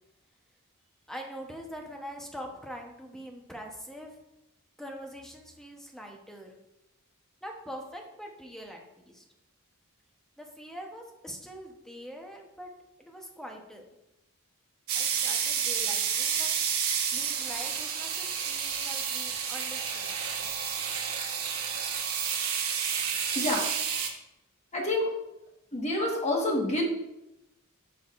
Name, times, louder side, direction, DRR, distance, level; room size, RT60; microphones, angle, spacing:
voice 1, 1.1-4.1 4.8-6.5 7.4-9.2 10.4-12.7 13.0-13.8 15.0-20.2, equal, ahead, 1 dB, 0.9 m, -44 dB
sound 1, 14.9-24.1, right 7 dB, 70° right, 1.1 m, -30 dB
voice 2, 23.3-23.7 24.7-25.1 25.7-26.8, left 1 dB, 30° left, -1 dB, 1.5 m, -28 dB
10.5 x 5.6 x 2.5 m, 0.92 s
head